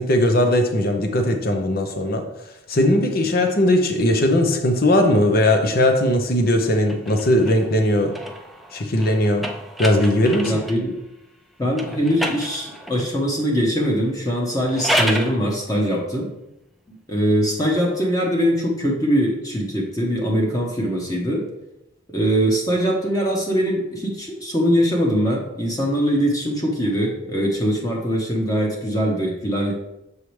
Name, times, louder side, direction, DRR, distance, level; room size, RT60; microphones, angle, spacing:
voice 1, 0.0-2.3 2.7-8.1 8.7-9.5 9.8-10.5, left 1 dB, 50° left, 5 dB, 0.7 m, -19 dB
sound 1, 6.8-10.9 11.7-13.1 14.5-15.4, equal, ahead, 0.4 m, -29 dB
voice 2, 10.4-10.9 11.6-16.3 16.9-21.4 22.1-29.7, equal, 20° left, -2 dB, 1.0 m, -22 dB
7.0 x 4.8 x 3.2 m, 0.88 s
head